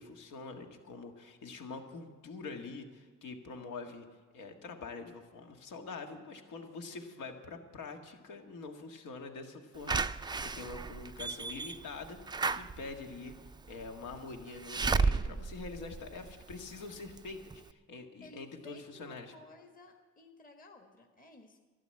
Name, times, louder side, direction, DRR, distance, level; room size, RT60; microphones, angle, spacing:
voice 1, 0.0-4.1 4.3-13.3 13.7-19.3, left 4 dB, 80° left, 3 dB, 1.8 m, -45 dB
Slam / Alarm, 9.9-16.7 17.2-17.3 17.5-17.6, right 4 dB, 15° right, 0.4 m, -34 dB
voice 2, 18.2-21.6, left 2 dB, 30° left, 3 dB, 1.4 m, -55 dB
12.5 x 11.0 x 7.7 m, 1.4 s
cardioid pair, 90°, 30 cm